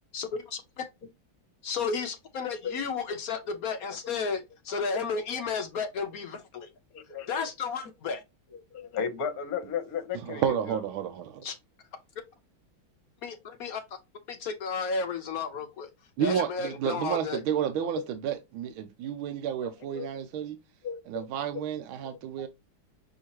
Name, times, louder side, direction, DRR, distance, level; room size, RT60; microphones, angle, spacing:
voice 1, 1.6-6.7 7.3-8.2 11.4-11.5 13.2-13.8 14.3-15.9 16.2-17.4, left 5 dB, 70° left, 0.8 m, -32 dB
voice 2, 6.9-7.4 8.7-10.8 18.0-18.1 19.9-20.1 20.8-21.2, left 7 dB, 55° left, 1.3 m, -34 dB
voice 3, 10.1-11.4 16.2-20.6 21.1-22.5, right 9 dB, 80° right, 1.4 m, -31 dB
6.4 x 2.7 x 2.9 m
omnidirectional pair, 2.3 m